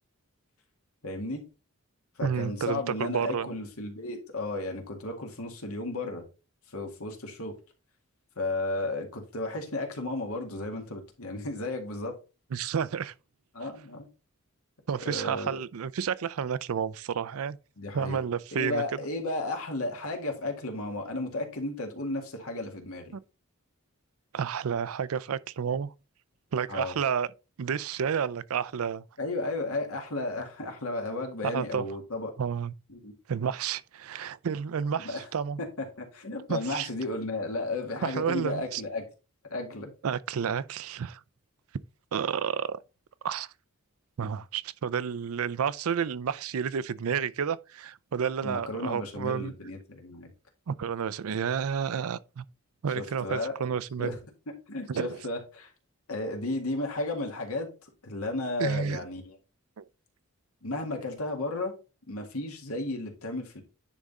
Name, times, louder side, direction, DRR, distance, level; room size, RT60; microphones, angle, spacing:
voice 1, 1.0-1.4 2.2-6.3 6.7-7.5 8.4-12.1 13.5-14.1 15.0-15.5 17.8-18.2 18.5-23.1 26.7-27.0 29.2-32.3 32.9-33.1 35.0-35.2 35.8-39.0 39.5-39.9 48.4-50.3 52.9-53.5 54.0-54.2 54.7-55.7 56.1-59.4 60.6-61.7 62.1-63.6, left 2 dB, 85° left, 2.1 m, -34 dB
voice 2, 2.2-3.5 12.5-13.1 14.9-17.6 17.9-18.8 23.1-23.2 24.3-25.9 26.5-27.3 27.6-29.0 31.4-31.9 32.4-32.7 33.3-35.6 36.5-36.9 38.0-38.8 40.0-41.2 42.1-42.8 43.2-43.5 44.2-49.5 50.7-52.4 52.8-54.2 54.9-55.2 58.6-59.0 59.8-59.9, right 7 dB, 80° right, 0.4 m, -30 dB
10.0 x 3.7 x 4.1 m
head